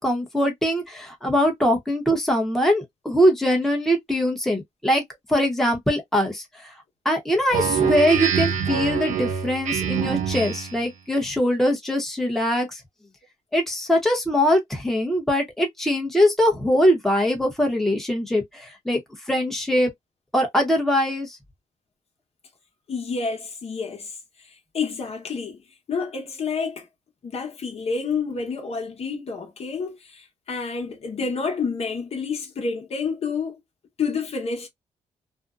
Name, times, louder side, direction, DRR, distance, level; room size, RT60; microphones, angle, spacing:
voice 1, 0.0-5.0 5.3-6.7 7.0-12.8 13.5-19.0 19.3-19.9 20.3-21.4, equal, 5° left, 0.9 m, -22 dB
Speech synthesizer, 7.5-10.8, right 7 dB, 80° right, 0.6 m, -25 dB
voice 2, 22.9-24.2 24.4-25.6 25.9-26.9 27.2-33.6 34.0-34.7, left 5 dB, 55° left, 1.0 m, -29 dB
2.6 x 2.1 x 2.4 m
wide cardioid pair, 120°, 12 cm